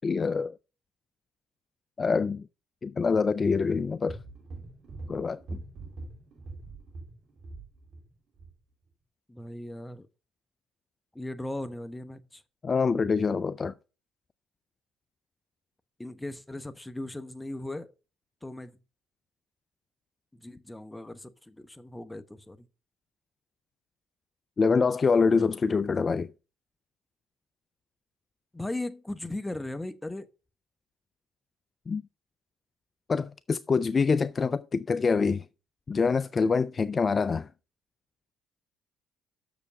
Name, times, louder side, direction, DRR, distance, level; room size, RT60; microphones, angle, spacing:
voice 1, 0.0-0.5 2.0-2.4 2.8-4.2 5.1-5.6 12.6-13.7 24.6-26.3 31.9-32.0 33.1-35.4 35.9-37.5, left 5 dB, 35° left, 0.3 m, -25 dB
sound 1, 4.1-8.1 8.4-8.5, right 2 dB, 50° right, 2.9 m, -43 dB
voice 2, 9.3-10.1 11.1-12.4 16.0-17.9 18.4-18.8 20.3-22.7 28.5-30.3, left 1 dB, 10° left, 0.9 m, -38 dB
7.0 x 6.8 x 6.1 m
hypercardioid pair, 60°, 0 cm